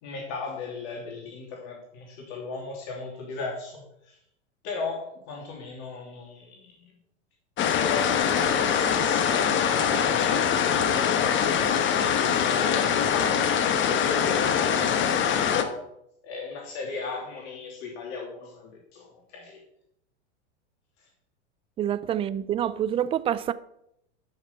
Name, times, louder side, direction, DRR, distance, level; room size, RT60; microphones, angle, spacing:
voice 1, 0.0-4.2 4.6-6.9 7.6-11.5 11.9-15.8 16.2-19.6, left 4 dB, 50° left, 2.9 m, -37 dB
sound 1, 7.6-15.6, left 8 dB, 30° left, 1.2 m, -23 dB
voice 2, 21.8-23.5, right 10 dB, 15° right, 0.3 m, -27 dB
11.5 x 5.8 x 5.7 m
hypercardioid pair, 105°, 36 cm